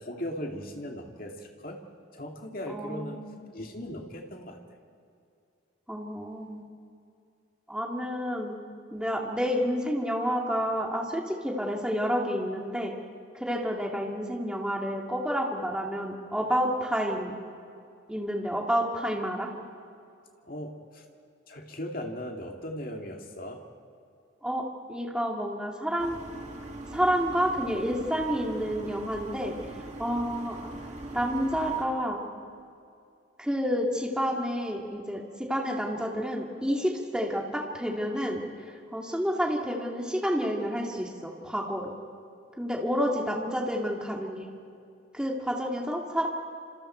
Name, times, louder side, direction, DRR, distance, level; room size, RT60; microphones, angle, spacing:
voice 1, 0.0-1.8 2.1-3.2 3.5-4.6 20.5-21.0 21.5-23.6, equal, 45° left, 2 dB, 2.3 m, -38 dB
voice 2, 2.7-3.4 5.9-6.7 7.7-8.5 8.9-12.9 13.3-17.3 18.1-19.5 24.4-24.6 24.9-26.2 26.9-29.5 30.0-30.7 31.1-32.2 33.4-38.4 38.9-41.9 42.6-44.5 45.1-46.3, equal, 5° right, 0 dB, 2.4 m, -29 dB
sound 1, 26.0-31.8, right 1 dB, 35° right, 2.1 m, -41 dB
28.0 x 27.0 x 4.6 m, 2.5 s
head